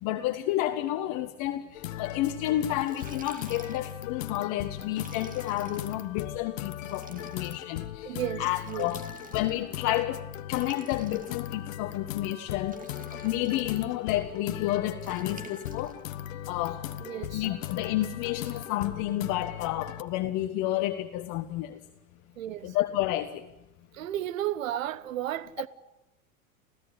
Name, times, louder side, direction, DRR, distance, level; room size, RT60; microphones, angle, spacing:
voice 1, 0.0-9.0 9.3-12.8 13.1-15.9 16.5-16.8 17.3-21.8 22.6-23.5, left 14 dB, 45° left, 1.5 m, -30 dB
sound 1, 1.7-20.0, left 12 dB, 65° left, 1.3 m, -39 dB
Liquid, 2.6-4.0 4.9-6.0 6.8-7.7 8.6-9.7 10.5-11.7 12.7-13.7 15.0-16.0, right 4 dB, 20° right, 2.4 m, -48 dB
voice 2, 8.0-8.9 17.0-17.4 22.4-22.8 23.9-25.7, right 12 dB, 70° right, 1.2 m, -33 dB
28.0 x 16.0 x 9.9 m
hypercardioid pair, 90°, 41 cm